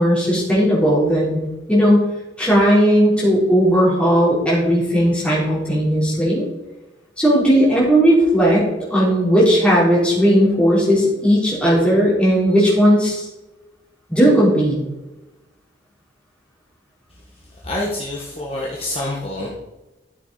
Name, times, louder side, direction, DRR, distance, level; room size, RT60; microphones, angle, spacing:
voice 1, 0.0-1.4 1.7-2.1 2.4-6.4 7.2-8.6 8.9-13.3 14.1-14.8, equal, 5° left, -6 dB, 4.0 m, -16 dB
voice 2, 17.6-19.5, left 1 dB, 30° left, -4 dB, 1.6 m, -26 dB
13.0 x 7.3 x 4.2 m, 1.0 s
head